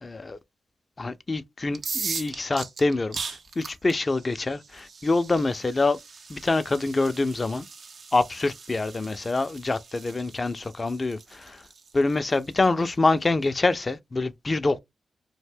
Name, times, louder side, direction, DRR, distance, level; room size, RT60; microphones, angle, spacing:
voice 1, 0.0-0.4 1.0-3.2 3.6-6.0 6.3-7.6 8.1-11.6 11.9-14.8, left 3 dB, 40° left, 0.4 m, -25 dB
sound 1, 1.7-13.4, right 5 dB, 65° right, 0.4 m, -39 dB
2.5 x 2.1 x 3.4 m
supercardioid pair, 45°, 0 cm